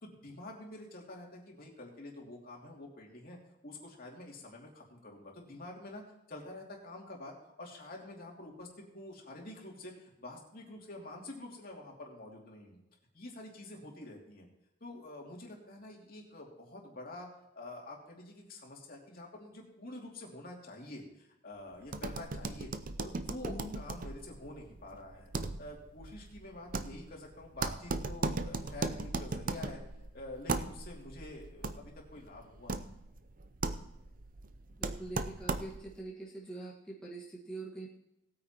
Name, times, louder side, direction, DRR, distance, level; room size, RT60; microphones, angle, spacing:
voice 1, 0.0-6.0 6.3-8.7 8.9-12.8 13.1-14.5 14.8-17.3 17.5-22.7 23.0-25.3 25.6-29.8 30.1-33.0, left 2 dB, 45° left, -1 dB, 2.7 m, -47 dB
sound 1, 21.9-36.0, right 3 dB, 45° right, 0.6 m, -38 dB
voice 2, 23.5-23.8 34.8-37.9, right 2 dB, 5° left, -6 dB, 1.5 m, -44 dB
19.0 x 8.9 x 3.0 m, 0.88 s
head